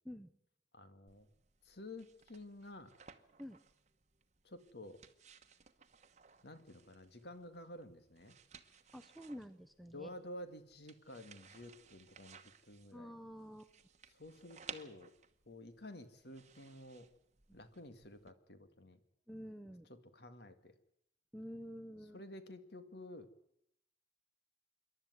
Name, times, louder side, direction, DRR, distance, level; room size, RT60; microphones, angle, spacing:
voice 1, 0.7-1.3 1.6-2.9 4.4-5.0 6.4-8.4 9.9-13.2 14.1-15.1 15.5-17.1 17.5-19.0 19.9-20.7 22.1-23.3, left 1 dB, 55° left, 9 dB, 1.9 m, -51 dB
sound 1, 1.1-18.3, right 7 dB, 35° right, 1.2 m, -59 dB
voice 2, 8.9-10.1 12.9-13.7 19.3-19.9 21.3-22.2, equal, ahead, 10 dB, 0.8 m, -49 dB
26.5 x 12.0 x 9.5 m, 0.74 s
head